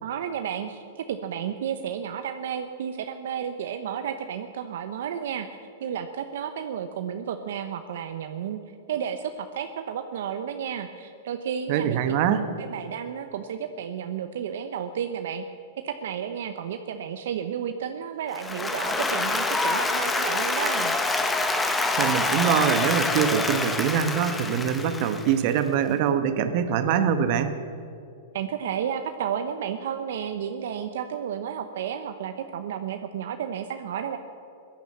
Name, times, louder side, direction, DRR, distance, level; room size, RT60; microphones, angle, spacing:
voice 1, 0.0-5.5 5.8-12.0 12.6-15.4 15.8-21.0 28.3-34.2, right 8 dB, 70° right, 7 dB, 0.9 m, -32 dB
voice 2, 11.7-12.4 22.0-27.5, right 8 dB, 50° right, 9 dB, 1.3 m, -24 dB
Applause, 18.3-25.5, left 2 dB, 10° left, 1.2 m, -26 dB
16.5 x 10.5 x 7.8 m, 2.6 s
hypercardioid pair, 135°, 0 cm